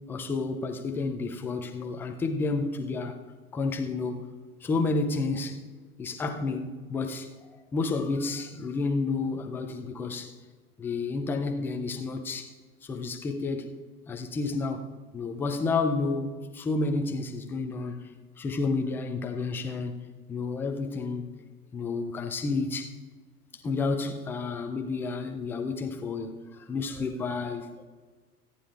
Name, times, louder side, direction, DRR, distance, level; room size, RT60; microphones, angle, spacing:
voice 1, 0.1-3.2 3.5-4.2 4.6-5.6 6.0-10.3 10.8-12.5 12.8-13.8 14.1-14.9 15.1-18.0 18.4-20.0 20.3-21.3 21.7-22.9 23.5-27.8, left 3 dB, 5° left, 5 dB, 0.3 m, -30 dB
24.5 x 9.9 x 2.4 m, 1.4 s
figure-of-eight pair, 90°, 47 cm